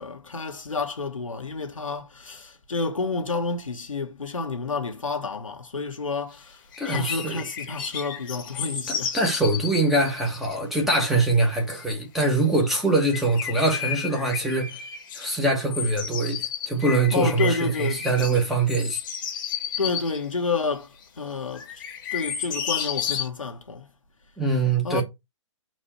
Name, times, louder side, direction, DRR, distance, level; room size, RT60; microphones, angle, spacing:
voice 1, 0.0-9.1 17.1-18.1 19.8-21.8 22.1-23.9 24.8-25.0, left 4 dB, 90° left, 1.0 m, -30 dB
sound 1, 6.7-10.5 10.9-11.0 11.3-12.3 12.6-12.7 13.0-15.4 15.7-20.2 21.0-21.1 21.5-23.3, left 8 dB, 40° left, 1.1 m, -33 dB
voice 2, 6.8-7.4 8.9-14.8 15.1-19.0 24.4-25.0, right 2 dB, ahead, 0.9 m, -23 dB
4.2 x 2.5 x 4.3 m
hypercardioid pair, 135°, 17 cm